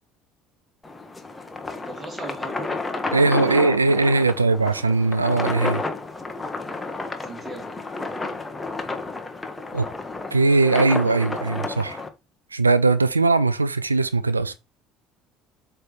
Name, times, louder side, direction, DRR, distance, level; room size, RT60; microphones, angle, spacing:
sound 1, 0.8-12.1, left 3 dB, 15° left, 1.2 m, -31 dB
voice 1, 1.9-4.0 7.2-7.7, right 1 dB, 20° right, 2.7 m, -38 dB
voice 2, 3.1-5.8 9.7-9.9 10.3-12.0 12.5-14.5, right 3 dB, 85° right, 0.4 m, -20 dB
8.0 x 3.4 x 4.4 m
figure-of-eight pair, 60°, 0 cm